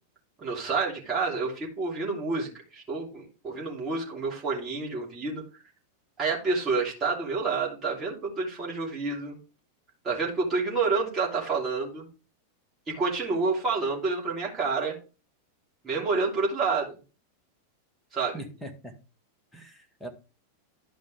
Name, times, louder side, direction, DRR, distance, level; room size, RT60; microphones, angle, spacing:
voice 1, 0.4-5.4 6.2-9.4 10.0-12.1 12.9-15.0 15.8-17.0 18.1-18.4, right 4 dB, 20° right, -3 dB, 3.2 m, -29 dB
voice 2, 18.3-19.0 19.5-20.1, right 1 dB, 5° left, 2 dB, 1.8 m, -41 dB
11.5 x 5.2 x 3.6 m, 0.32 s
figure-of-eight pair, 90°, 0 cm